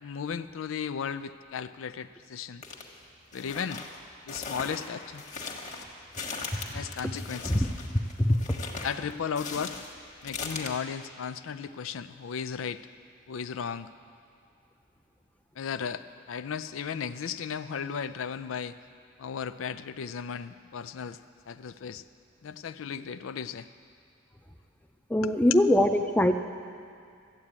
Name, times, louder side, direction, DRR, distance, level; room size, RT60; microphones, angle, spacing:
voice 1, 0.0-2.6 3.3-3.8 4.3-5.2 6.7-7.7 8.8-9.8 10.2-12.8 13.3-13.9 15.6-18.7 19.2-21.2 21.5-22.0 22.4-23.7 25.2-25.4, left 7 dB, 80° left, 12 dB, 0.4 m, -35 dB
sound 1, 2.6-2.8 3.3-10.7, left 4 dB, 40° left, 1.4 m, -39 dB
voice 2, 25.1-26.3, left 1 dB, 10° left, 6 dB, 0.6 m, -22 dB
13.5 x 8.2 x 8.7 m, 2.4 s
head